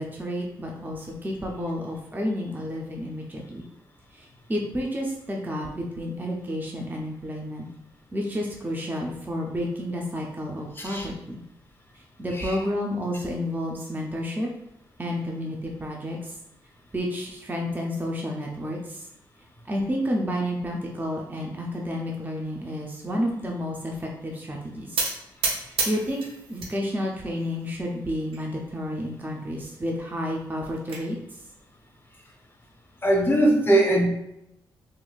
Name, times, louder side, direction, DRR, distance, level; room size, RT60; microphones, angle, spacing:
voice 1, 0.0-3.7 4.1-7.7 8.1-11.4 12.2-14.5 15.0-16.4 16.9-19.1 19.7-25.1 25.6-26.2 26.5-31.2, equal, 20° right, 0 dB, 0.5 m, -30 dB
voice 2, 10.8-11.1 12.4-12.6 33.0-34.1, right 1 dB, 25° left, 1 dB, 0.7 m, -20 dB
sound 1, 25.0-26.8 27.1-27.8 28.3-28.4 28.7-28.8 29.2-29.3 30.4-31.0, right 4 dB, 80° right, 0.5 m, -30 dB
2.9 x 2.5 x 2.3 m, 0.83 s
supercardioid pair, 50°, 9 cm